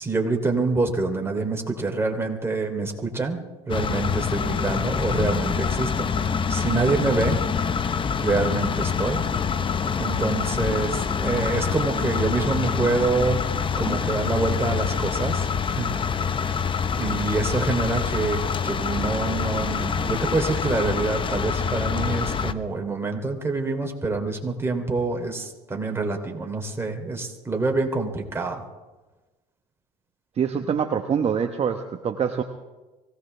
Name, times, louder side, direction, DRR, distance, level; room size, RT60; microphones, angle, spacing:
voice 1, 0.0-7.4 8.2-9.3 10.0-13.5 13.8-15.9 17.0-28.6, right 3 dB, 15° right, 2 dB, 2.9 m, -26 dB
sound 1, 3.7-22.5, left 6 dB, 30° left, 0.8 m, -26 dB
voice 2, 30.4-32.4, right 7 dB, 35° right, 5 dB, 1.1 m, -25 dB
24.5 x 17.0 x 3.4 m, 1.2 s
supercardioid pair, 90°, 18 cm